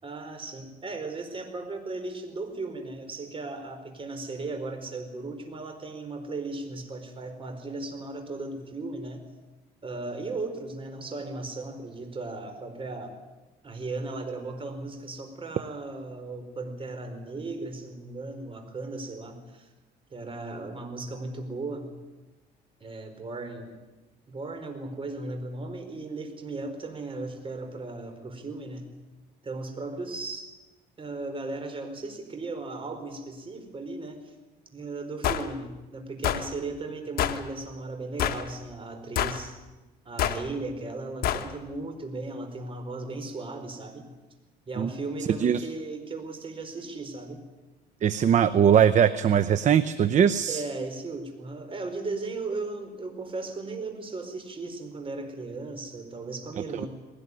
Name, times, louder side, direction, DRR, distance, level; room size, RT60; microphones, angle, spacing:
voice 1, 0.0-9.3 9.8-13.1 13.6-19.7 20.1-21.9 22.8-23.7 24.3-28.9 29.4-30.5 31.0-34.3 34.7-39.6 40.0-44.1 44.7-47.4 50.5-56.9, right 3 dB, 30° right, 6 dB, 4.7 m, -36 dB
sound 1, 35.2-35.5 36.2-36.5 37.2-37.4 38.2-38.5 39.2-39.4 40.2-40.4 41.2-41.5, left 10 dB, 65° left, 1.5 m, -26 dB
voice 2, 48.0-50.6, right 8 dB, 45° right, 13 dB, 0.8 m, -21 dB
20.0 x 18.0 x 9.9 m, 1.2 s
cardioid pair, 110°, 17 cm